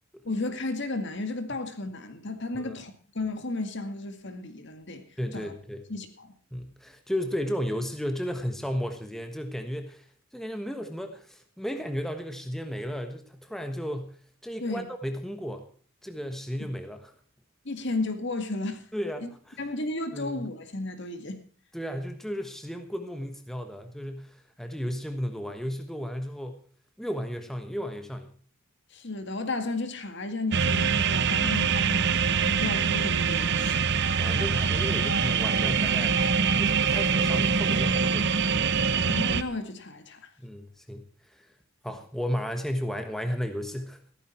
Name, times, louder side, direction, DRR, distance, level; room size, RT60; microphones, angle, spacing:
voice 1, 0.2-5.0 5.3-5.5 5.9-6.3 14.6-14.8 16.6-16.7 17.7-18.9 19.2-19.3 19.6-21.4 28.9-33.9 39.1-40.3, left 2 dB, 55° left, 2.0 m, -33 dB
voice 2, 5.2-5.8 6.5-10.1 10.3-14.2 14.4-15.7 16.0-17.1 18.9-19.6 20.1-20.5 21.7-26.6 27.0-28.3 34.2-36.1 36.6-38.7 40.4-41.5 41.8-44.0, equal, ahead, 1.3 m, -34 dB
sound 1, 30.5-39.4, right 5 dB, 50° right, 0.9 m, -24 dB
15.5 x 13.5 x 4.4 m
head